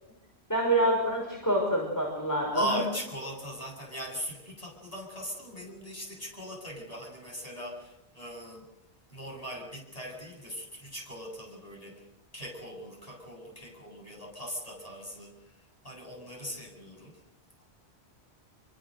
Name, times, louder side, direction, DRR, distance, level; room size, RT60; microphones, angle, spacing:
voice 1, 0.5-2.8, right 1 dB, 15° left, -1 dB, 5.7 m, -27 dB
voice 2, 2.5-8.7 9.1-12.0 12.3-15.3 15.8-17.2, equal, 35° left, 0 dB, 8.3 m, -39 dB
27.5 x 24.0 x 6.6 m, 0.85 s
omnidirectional pair, 1.1 m